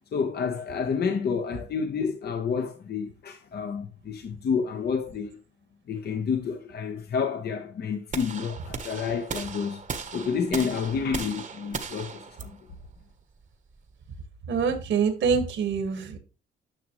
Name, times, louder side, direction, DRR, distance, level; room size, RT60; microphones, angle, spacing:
voice 1, 0.1-5.4 5.9-9.8 10.1-12.5, left 6 dB, 55° left, 1.0 m, -29 dB
sound 1, 8.1-14.2, right 5 dB, 40° right, 1.1 m, -37 dB
voice 2, 14.5-16.2, right 6 dB, 70° right, 1.8 m, -25 dB
10.0 x 6.1 x 3.1 m
cardioid pair, 90°, 20 cm